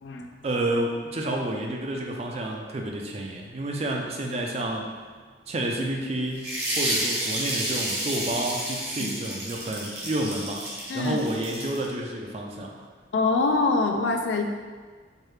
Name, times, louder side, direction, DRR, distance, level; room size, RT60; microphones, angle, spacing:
voice 1, 0.4-4.9 5.5-6.5 6.8-10.6 10.9-12.7, right 1 dB, 35° right, 0 dB, 0.4 m, -30 dB
sound 1, 6.4-11.9, right 1 dB, 60° right, 1.0 m, -30 dB
voice 2, 13.1-14.4, left 3 dB, 75° left, 4 dB, 0.4 m, -24 dB
4.6 x 2.3 x 3.2 m, 1.5 s
head